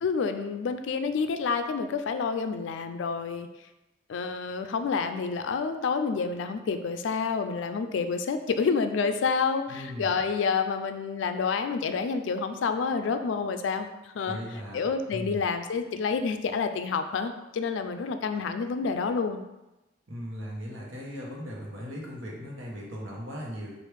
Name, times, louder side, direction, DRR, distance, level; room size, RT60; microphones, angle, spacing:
voice 1, 0.0-3.5 4.1-14.4 14.7-19.4, left 5 dB, 70° left, 8 dB, 0.3 m, -28 dB
voice 2, 9.7-10.3 14.2-15.5 20.1-23.8, equal, 80° right, -3 dB, 1.0 m, -38 dB
4.7 x 2.5 x 3.3 m, 0.99 s
head